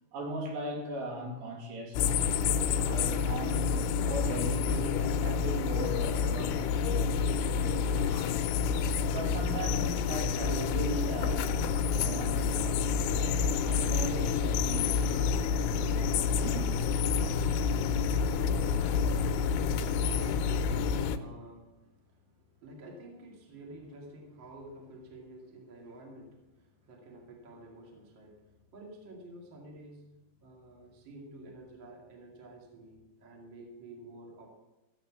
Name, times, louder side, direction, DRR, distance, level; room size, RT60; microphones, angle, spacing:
voice 1, 0.1-7.3 7.6-8.4 9.1-12.9 13.2-15.2 16.4-16.7, right 1 dB, 75° right, 0 dB, 4.7 m, -39 dB
sound 1, 1.9-21.2, left 6 dB, 85° left, 3.0 m, -28 dB
voice 2, 19.6-34.5, right 1 dB, 35° right, 0 dB, 2.2 m, -50 dB
15.0 x 7.7 x 7.3 m, 1.0 s
omnidirectional pair, 5.3 m